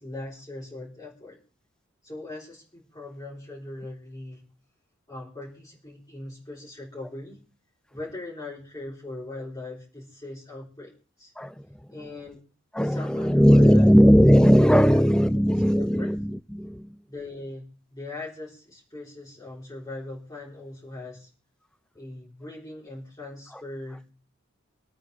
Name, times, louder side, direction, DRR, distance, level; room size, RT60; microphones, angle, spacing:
voice 1, 0.0-1.4 2.0-4.5 5.1-7.4 7.9-10.9 11.2-11.3 11.9-12.4 12.8-13.9 14.9-15.0 15.5-16.1 17.1-21.3 21.9-24.1, left 2 dB, 20° left, 3.7 m, -40 dB
voice 2, 12.7-16.9, equal, 5° left, 0.6 m, -18 dB
25.0 x 8.7 x 3.5 m
head